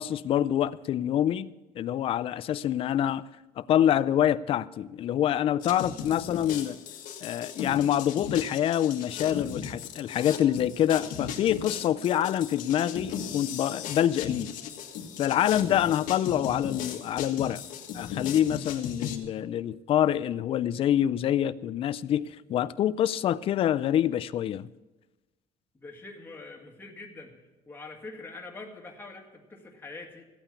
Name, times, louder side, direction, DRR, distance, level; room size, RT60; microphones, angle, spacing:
voice 1, 0.0-3.2 3.6-6.8 7.2-14.5 15.2-17.6 17.9-24.7, left 11 dB, 45° left, 0.4 m, -26 dB
sound 1, 5.6-19.2, left 8 dB, 80° left, 1.5 m, -37 dB
voice 2, 25.7-27.4 27.7-30.3, left 3 dB, 15° left, 1.9 m, -44 dB
15.0 x 8.8 x 6.9 m
cardioid pair, 145°, 14 cm